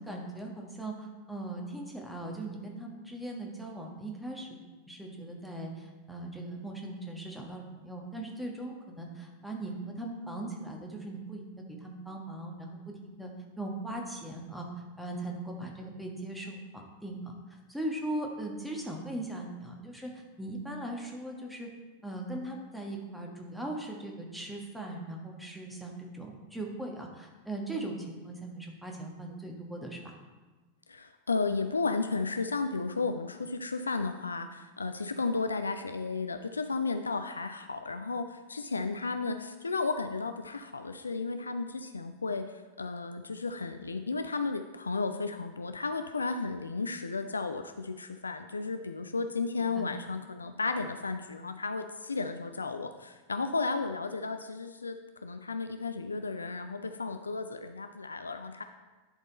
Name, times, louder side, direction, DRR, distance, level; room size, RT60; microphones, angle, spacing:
voice 1, 0.0-4.5 4.8-13.3 13.6-14.7 15.0-17.3 17.7-21.7 22.0-30.1 49.6-49.9, right 1 dB, 5° right, 1 dB, 1.4 m, -39 dB
voice 2, 30.9-42.5 42.8-58.6, left 4 dB, 75° left, 8 dB, 0.4 m, -33 dB
11.0 x 4.2 x 4.1 m, 1.2 s
figure-of-eight pair, 90°, 0 cm